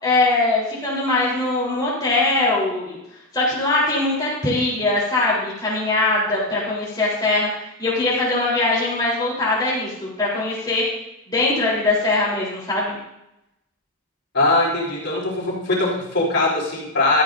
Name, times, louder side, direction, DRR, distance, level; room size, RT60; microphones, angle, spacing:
voice 1, 0.0-3.0 3.3-7.5 7.8-10.8 11.3-13.0, left 2 dB, 20° left, -6 dB, 3.7 m, -21 dB
voice 2, 14.3-17.2, left 2 dB, 55° left, -5 dB, 4.1 m, -21 dB
16.0 x 13.0 x 2.6 m, 0.87 s
head